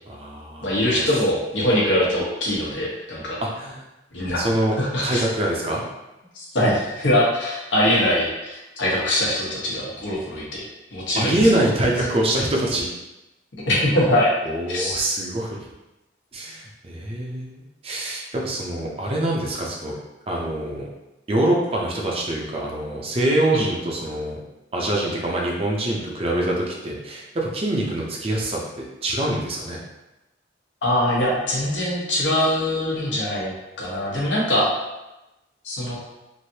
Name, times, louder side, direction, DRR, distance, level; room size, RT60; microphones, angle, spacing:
voice 1, 0.1-1.0 3.4-3.8 4.4-4.7 5.0-5.8 11.2-12.9 14.4-15.6 16.3-19.9 20.3-20.9 21.3-24.4 24.7-29.8, right 1 dB, 30° right, -2 dB, 0.5 m, -24 dB
voice 2, 0.6-3.4 4.1-4.4 4.8-5.2 6.3-11.4 13.7-14.3 14.7-15.0 23.5-23.6 30.8-33.5 33.8-34.7 35.6-36.0, left 1 dB, 80° left, -5 dB, 1.0 m, -22 dB
3.2 x 2.6 x 2.7 m, 0.98 s
head